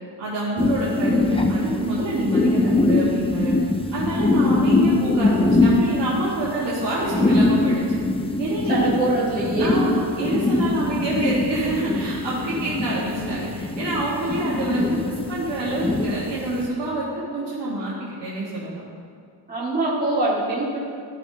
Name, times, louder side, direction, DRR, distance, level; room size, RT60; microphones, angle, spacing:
voice 1, 0.2-3.5 3.9-8.0 8.4-8.9 9.6-17.9 18.2-18.8, right 2 dB, 75° right, -8 dB, 1.7 m, -27 dB
sound 1, 0.6-16.7, left 2 dB, 15° left, 0.4 m, -22 dB
voice 2, 8.7-9.9 19.5-20.8, right 2 dB, 20° right, -9 dB, 1.8 m, -23 dB
14.0 x 5.8 x 2.7 m, 2.2 s
wide cardioid pair, 115°, 43 cm